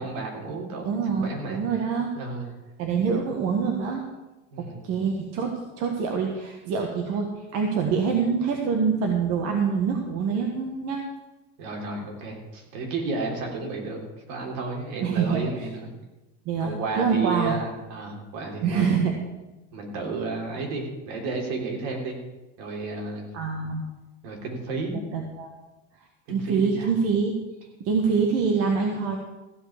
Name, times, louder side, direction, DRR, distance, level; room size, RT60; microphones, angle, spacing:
voice 1, 0.0-0.9 1.2-1.6 2.1-2.5 4.5-4.8 11.6-15.9 16.6-18.8 19.7-22.2 22.6-23.4 24.2-25.0 26.3-26.9, right 3 dB, 65° right, 1 dB, 3.4 m, -32 dB
voice 2, 0.8-2.1 2.8-4.0 4.6-11.0 15.0-15.4 16.4-16.7 17.0-17.6 18.6-19.1 23.3-23.8 25.1-25.5 26.3-27.3 27.8-29.2, right 5 dB, 50° right, 2 dB, 1.6 m, -25 dB
15.0 x 5.4 x 8.6 m, 1.1 s
cardioid pair, 150°, 32 cm